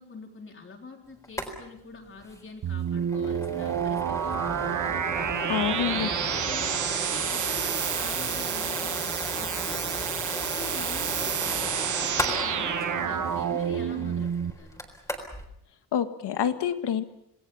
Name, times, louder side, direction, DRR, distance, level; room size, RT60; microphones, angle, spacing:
voice 1, 0.0-4.9 5.3-6.8 7.1-10.2 10.5-14.8, left 4 dB, 30° left, 3 dB, 3.8 m, -45 dB
sound 1, 1.2-1.5 1.8-1.9 2.2-2.4 2.8-15.5, left 1 dB, 10° left, 4.0 m, -36 dB
sound 2, 2.6-14.5, right 8 dB, 45° right, 1.3 m, -29 dB
voice 2, 5.5-6.1 15.9-17.0, left 9 dB, 80° left, 9 dB, 1.8 m, -27 dB
28.0 x 19.5 x 7.2 m, 0.80 s
wide cardioid pair, 180°, 40 cm